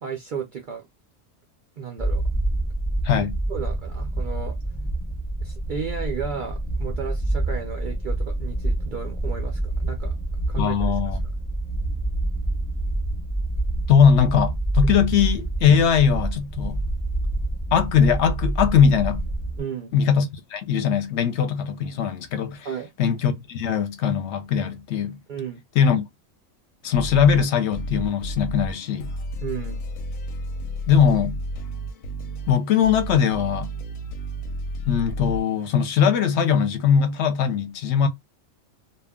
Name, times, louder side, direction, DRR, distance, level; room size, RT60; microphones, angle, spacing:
voice 1, 0.0-0.9 1.8-2.2 3.1-4.6 5.4-10.2 10.5-10.9 19.6-19.9 22.6-22.9 25.3-25.6 29.4-29.8, right 6 dB, 70° right, 0.4 m, -33 dB
sound 1, 2.0-19.6, right 2 dB, 10° left, 0.5 m, -27 dB
voice 2, 3.0-3.4 10.6-11.2 13.9-16.8 17.7-19.2 19.9-22.7 23.0-25.2 25.8-26.0 26.8-29.1 30.9-31.4 32.5-33.7 34.9-38.1, left 7 dB, 65° left, 0.8 m, -20 dB
sound 2, 26.8-35.4, equal, 90° left, 1.0 m, -32 dB
2.3 x 2.1 x 3.4 m
omnidirectional pair, 1.4 m